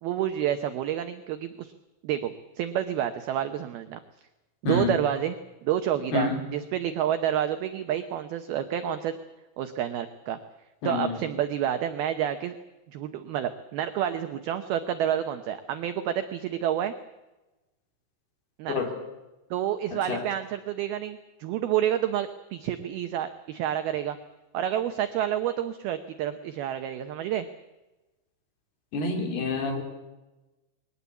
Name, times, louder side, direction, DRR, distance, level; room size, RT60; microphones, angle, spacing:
voice 1, 0.0-1.7 2.0-4.0 4.6-5.4 5.6-9.1 9.6-10.4 10.8-12.6 12.9-16.9 18.6-18.8 19.5-24.2 24.5-27.5, right 10 dB, 85° right, 8 dB, 2.1 m, -29 dB
voice 2, 4.7-5.0 6.1-6.4 10.8-11.2 18.7-18.9 20.1-20.2 28.9-29.8, left 3 dB, 55° left, 4 dB, 5.0 m, -27 dB
22.0 x 18.5 x 8.4 m, 1.1 s
omnidirectional pair, 5.7 m